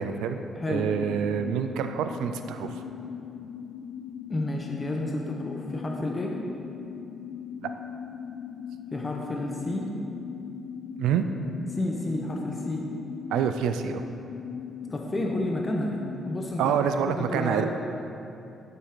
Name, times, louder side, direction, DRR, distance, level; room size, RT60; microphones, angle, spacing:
voice 1, 0.0-0.4 0.7-2.8 7.6-7.7 11.0-11.3 13.3-14.0 16.6-17.6, right 8 dB, 90° right, 8 dB, 0.4 m, -27 dB
voice 2, 0.6-0.9 4.3-6.4 8.9-9.9 11.7-12.9 14.9-16.8 17.1-17.7, left 1 dB, 25° left, 0 dB, 0.9 m, -30 dB
sound 1, 0.8-16.5, left 7 dB, 85° left, 0.3 m, -39 dB
7.9 x 6.9 x 5.1 m, 2.8 s
cardioid pair, 90°, 0 cm